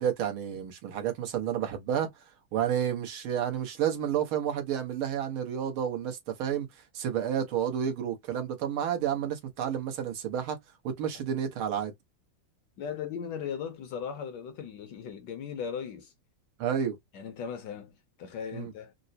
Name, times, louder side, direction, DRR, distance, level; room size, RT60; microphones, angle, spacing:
voice 1, 0.0-2.1 2.5-6.7 6.9-10.6 10.8-11.9 16.6-17.0 18.5-18.7, right 9 dB, 85° right, 1.9 m, -30 dB
voice 2, 12.8-16.1 17.1-17.9 18.2-18.9, left 7 dB, 70° left, 1.1 m, -37 dB
4.5 x 2.0 x 2.7 m
omnidirectional pair, 2.2 m